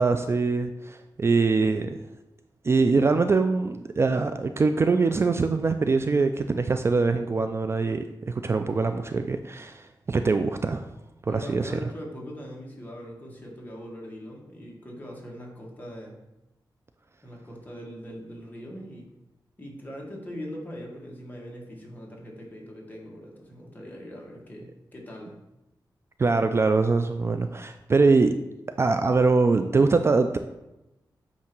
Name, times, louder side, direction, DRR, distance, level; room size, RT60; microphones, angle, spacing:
voice 1, 0.0-1.9 2.6-10.9 11.3-11.8 26.2-28.3 28.8-30.4, right 4 dB, 35° right, 8 dB, 0.3 m, -23 dB
voice 2, 11.3-16.2 17.2-19.1 19.6-25.4, equal, 20° left, -2 dB, 1.6 m, -41 dB
8.4 x 2.8 x 5.9 m, 0.96 s
wide cardioid pair, 110°, 8 cm